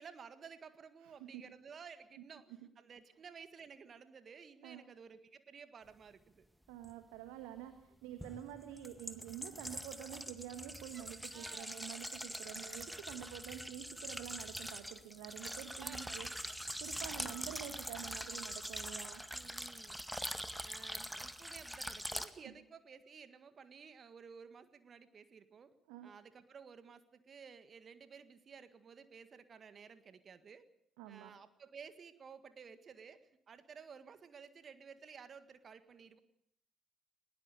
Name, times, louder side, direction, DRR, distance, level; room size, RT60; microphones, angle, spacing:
voice 1, 0.0-6.4 10.9-11.7 13.5-13.7 15.8-16.6 17.0-17.1 19.3-20.0 20.6-25.7 26.0-30.6 31.1-36.2, right 6 dB, 45° right, 12 dB, 1.7 m, -55 dB
voice 2, 6.7-16.3 16.8-19.2 22.4-22.5 25.9-26.1 31.0-31.3, right 11 dB, 75° right, 9 dB, 1.5 m, -48 dB
sound 1, 6.8-6.9 8.2-22.3, equal, ahead, 1.9 m, -44 dB
20.0 x 19.0 x 8.2 m, 0.72 s
hypercardioid pair, 45°, 0 cm